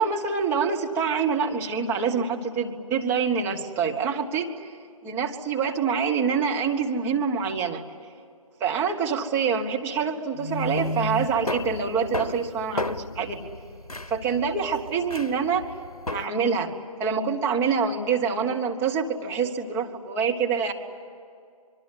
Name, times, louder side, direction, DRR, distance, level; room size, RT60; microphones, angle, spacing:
voice 1, 0.0-4.7 5.0-7.8 8.6-13.5 14.1-15.7 16.1-16.7 17.0-20.7, right 6 dB, 10° right, 0 dB, 1.4 m, -26 dB
sound 1, 10.4-16.3, left 1 dB, 90° left, 0.8 m, -32 dB
25.5 x 23.5 x 9.4 m, 2.4 s
figure-of-eight pair, 140°, 19 cm